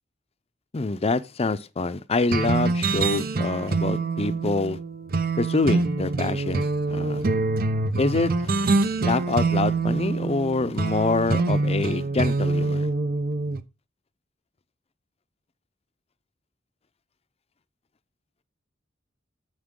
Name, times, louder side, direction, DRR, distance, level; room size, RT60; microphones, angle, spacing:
voice 1, 0.7-4.8 5.4-7.3 8.0-8.5 9.0-12.9, left 3 dB, 35° left, 0.6 m, -26 dB
sound 1, 2.3-13.6, right 3 dB, 50° right, 0.6 m, -25 dB
9.6 x 7.3 x 3.8 m
head